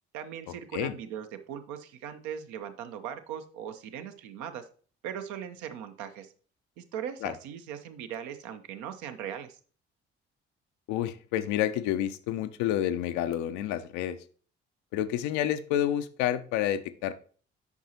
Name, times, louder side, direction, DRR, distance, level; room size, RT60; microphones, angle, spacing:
voice 1, 0.1-4.6 5.0-6.3 6.8-9.6, right 9 dB, 60° right, 8 dB, 0.8 m, -39 dB
voice 2, 10.9-14.2 14.9-17.1, left 11 dB, 60° left, 11 dB, 0.6 m, -29 dB
8.1 x 5.4 x 2.9 m, 0.42 s
figure-of-eight pair, 45°, 33 cm